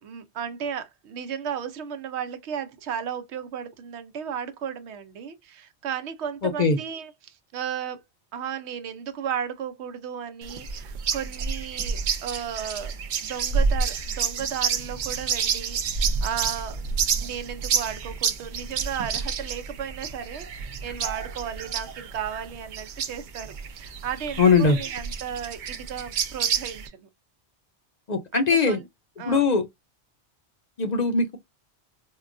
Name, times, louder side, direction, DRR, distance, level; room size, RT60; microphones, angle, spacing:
voice 1, 0.0-8.0 8.3-12.9 13.2-16.8 17.2-27.1 28.3-28.9 29.2-29.5, right 8 dB, 90° right, 0.9 m, -34 dB
voice 2, 6.4-6.8 24.4-24.8 28.1-28.8 29.3-29.7 30.8-31.4, left 4 dB, 50° left, 0.6 m, -20 dB
sound 1, 10.4-26.9, right 6 dB, 55° right, 0.6 m, -29 dB
4.6 x 2.2 x 2.5 m
omnidirectional pair, 1.1 m